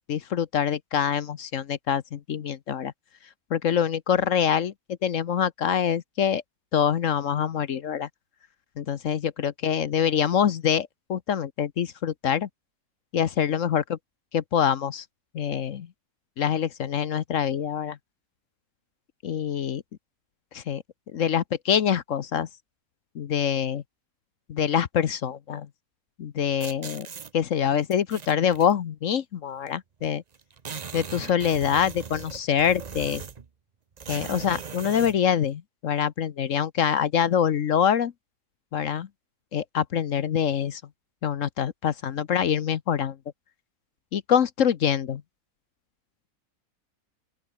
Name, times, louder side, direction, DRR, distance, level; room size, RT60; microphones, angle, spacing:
voice 1, 0.1-2.9 3.5-4.7 5.0-6.4 6.7-8.1 8.8-12.5 13.1-14.0 14.3-15.0 15.3-15.9 16.4-18.0 19.2-19.8 20.5-20.8 21.1-22.5 23.1-23.8 24.5-25.7 26.2-27.1 27.3-30.2 30.9-33.2 34.1-38.1 38.7-39.1 39.5-40.8 41.2-43.2 44.1-45.2, left 8 dB, 65° left, 1.2 m, -25 dB
sound 1, 26.6-27.3 27.9-28.7 29.7-29.8 30.0-30.1 30.3-33.5 34.0-35.2, right 6 dB, 35° right, 0.8 m, -38 dB
open air
omnidirectional pair, 1.5 m